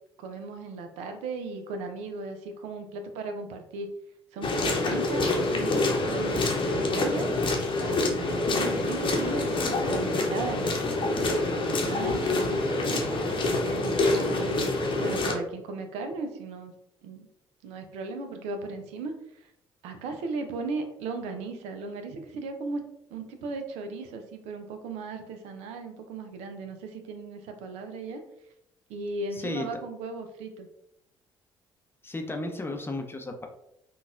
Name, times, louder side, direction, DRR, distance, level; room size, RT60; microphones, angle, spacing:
voice 1, 0.2-3.9 4.3-10.8 11.2-13.1 13.6-16.7 17.0-17.3 17.6-19.5 19.8-22.8 23.1-28.2 28.9-30.7, right 3 dB, 70° right, 6 dB, 0.5 m, -36 dB
sound 1, 4.4-15.3, left 2 dB, 45° left, 0.8 m, -26 dB
voice 2, 29.3-29.7 32.0-33.5, left 2 dB, 20° left, 4 dB, 0.6 m, -34 dB
3.9 x 2.3 x 2.4 m, 0.80 s
hypercardioid pair, 50°, 12 cm